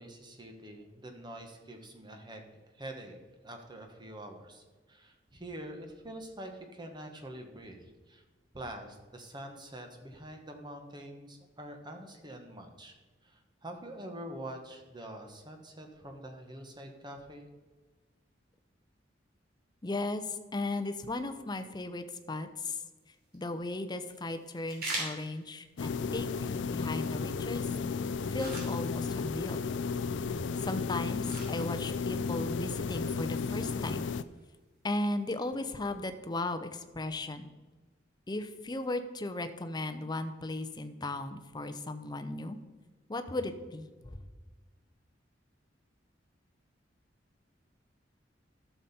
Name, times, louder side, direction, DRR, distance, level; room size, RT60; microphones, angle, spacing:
voice 1, 0.0-2.4 2.7-3.2 3.4-8.2 8.5-12.9 13.2-17.5, right 1 dB, 25° right, 4 dB, 1.3 m, -45 dB
voice 2, 19.8-22.8 23.3-27.7 28.3-29.6 30.6-34.1 34.8-37.5 38.3-42.6 43.1-44.2, left 2 dB, 25° left, 9 dB, 0.7 m, -36 dB
sound 1, 23.0-36.0, right 2 dB, 55° right, 3.0 m, -47 dB
sound 2, 25.8-34.2, left 5 dB, 75° left, 0.4 m, -33 dB
12.0 x 7.0 x 4.3 m, 1.3 s
head